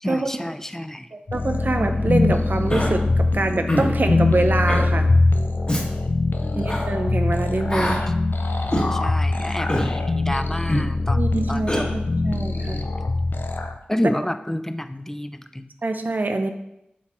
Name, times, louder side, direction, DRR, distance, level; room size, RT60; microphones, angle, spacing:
voice 1, 0.0-1.1 6.4-6.9 8.9-11.2 11.5-11.9 12.5-13.0 13.9-15.7, left 1 dB, 10° left, 10 dB, 0.4 m, -29 dB
voice 2, 1.1-5.1 6.6-8.0 11.1-12.8 15.8-16.5, right 2 dB, 60° right, 7 dB, 0.7 m, -25 dB
sound 1, 1.3-13.8, left 2 dB, 75° left, 0.5 m, -22 dB
Human voice, 2.7-2.9 3.7-3.9 4.7-4.9 5.7-5.8 6.6-6.8 7.7-8.0 8.7-8.9 9.7-9.9 10.7-10.9 11.7-11.8, equal, 30° left, 1.9 m, -23 dB
7.2 x 4.1 x 4.3 m, 0.85 s
wide cardioid pair, 45°, 3 cm